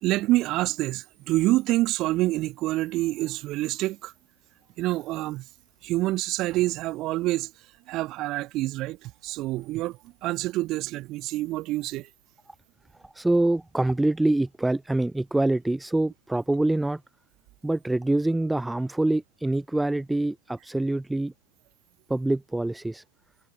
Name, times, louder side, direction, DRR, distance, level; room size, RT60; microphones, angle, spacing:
voice 1, 0.0-4.1 4.8-5.5 5.8-7.5 7.9-12.1, right 18 dB, 35° right, 1.4 m, -27 dB
voice 2, 13.0-17.0 17.6-21.3 22.1-23.0, right 2 dB, 5° right, 0.3 m, -25 dB
figure-of-eight pair, 90°, 0 cm